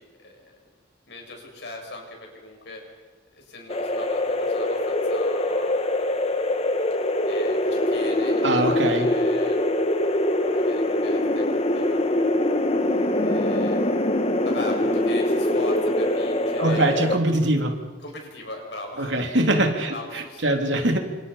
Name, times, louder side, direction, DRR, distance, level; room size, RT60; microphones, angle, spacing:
voice 1, 0.2-0.6 1.0-3.0 3.3-5.8 7.3-9.6 10.4-12.0 12.8-13.8 14.4-17.0 18.0-19.2 19.6-21.0, left 2 dB, 65° left, 1 dB, 7.4 m, -39 dB
sound 1, 3.7-17.2, left 1 dB, 35° left, 1.4 m, -23 dB
voice 2, 8.4-9.1 16.6-17.8 19.0-21.0, right 1 dB, 75° right, 4 dB, 3.3 m, -22 dB
29.0 x 26.5 x 5.7 m, 1.3 s
head